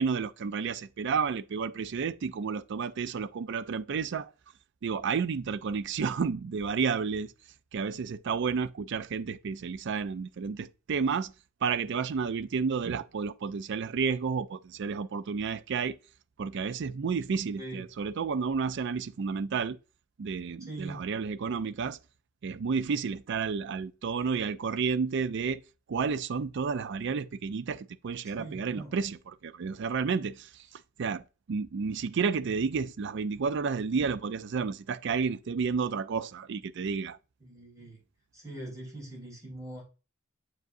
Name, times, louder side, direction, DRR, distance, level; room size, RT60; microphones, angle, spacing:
voice 1, 0.0-4.3 4.8-7.3 7.7-11.3 11.6-16.0 16.4-19.8 20.2-22.0 22.4-25.6 25.9-31.2 31.5-37.2, right 5 dB, 60° right, 0.4 m, -31 dB
voice 2, 20.6-21.0 28.2-28.9 37.4-38.0 38.3-39.8, right 1 dB, 15° right, 3.9 m, -42 dB
7.8 x 4.8 x 2.6 m
head